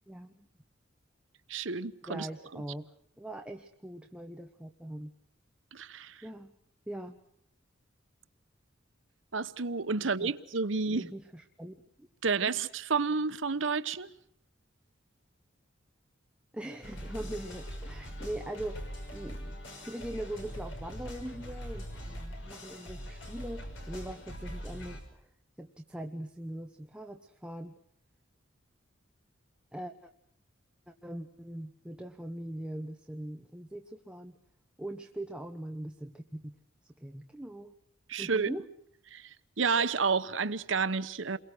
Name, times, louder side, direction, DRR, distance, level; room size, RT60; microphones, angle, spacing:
voice 1, 0.1-0.5 2.1-2.9 3.2-5.1 6.2-6.5 6.9-7.2 10.2-10.3 10.9-12.1 12.4-12.5 16.5-25.3 25.6-27.7 29.7-30.1 30.9-34.4 34.8-36.6 37.0-37.8 38.2-38.7, right 1 dB, 5° right, 1.1 m, -41 dB
voice 2, 1.5-2.3 2.5-2.6 5.7-6.2 9.3-11.1 12.2-14.1 38.1-38.5 39.1-39.3 39.6-41.4, right 4 dB, 75° right, 1.1 m, -30 dB
sound 1, 16.8-25.0, equal, 70° left, 5.9 m, -42 dB
29.5 x 22.5 x 6.3 m
head